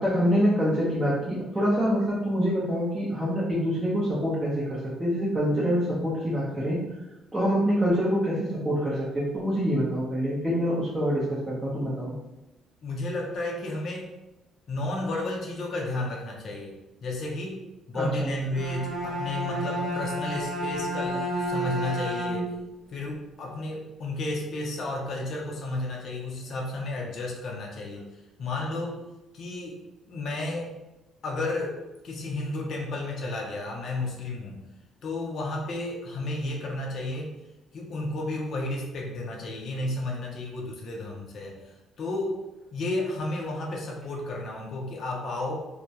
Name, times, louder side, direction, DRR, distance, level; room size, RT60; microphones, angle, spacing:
voice 1, 0.0-6.8 7.3-12.1 17.9-18.3, equal, 10° right, -8 dB, 0.6 m, -26 dB
voice 2, 12.8-14.1 14.7-22.6 22.9-28.1 28.4-29.0 29.3-30.7 31.2-31.8 32.0-34.6 35.0-37.4 37.7-42.4 42.7-45.6, left 2 dB, 55° left, -1 dB, 0.5 m, -32 dB
Bowed string instrument, 18.4-22.7, right 1 dB, 75° right, 0.9 m, -31 dB
2.2 x 2.0 x 2.7 m, 1.0 s
cardioid pair, 105°, 0 cm